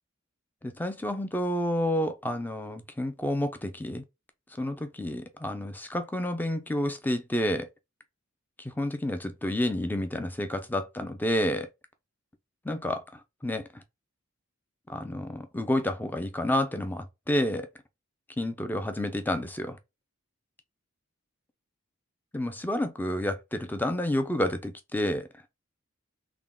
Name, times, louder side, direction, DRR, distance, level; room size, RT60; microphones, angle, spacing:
voice 1, 0.6-4.0 4.6-7.7 8.6-11.7 12.7-13.0 13.4-13.6 14.9-17.7 18.4-19.8 22.3-25.3, left 1 dB, 10° left, 0.4 m, -29 dB
3.6 x 2.2 x 3.6 m
head